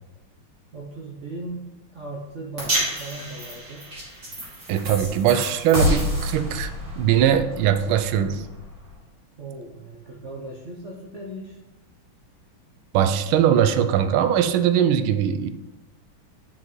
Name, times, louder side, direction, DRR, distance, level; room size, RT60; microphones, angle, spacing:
voice 1, 0.7-3.9 9.4-11.6, right 2 dB, 60° right, -1 dB, 0.7 m, -37 dB
sound 1, 2.6-8.9, left 1 dB, 40° right, 2.6 m, -29 dB
voice 2, 4.7-6.7 7.0-8.5 12.9-15.5, right 9 dB, 80° right, 10 dB, 1.4 m, -21 dB
9.2 x 5.6 x 3.1 m, 1.1 s
omnidirectional pair, 2.3 m